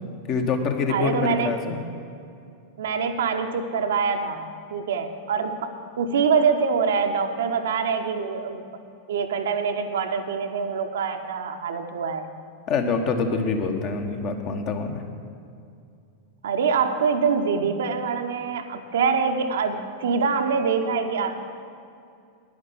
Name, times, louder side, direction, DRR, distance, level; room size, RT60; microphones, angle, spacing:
voice 1, 0.3-1.8 12.7-15.0, left 4 dB, 40° left, 5 dB, 1.3 m, -25 dB
voice 2, 0.9-1.6 2.8-8.6 9.1-12.3 16.4-21.4, right 5 dB, 60° right, 6 dB, 0.9 m, -25 dB
10.5 x 10.0 x 7.3 m, 2.4 s
figure-of-eight pair, 90°, 0 cm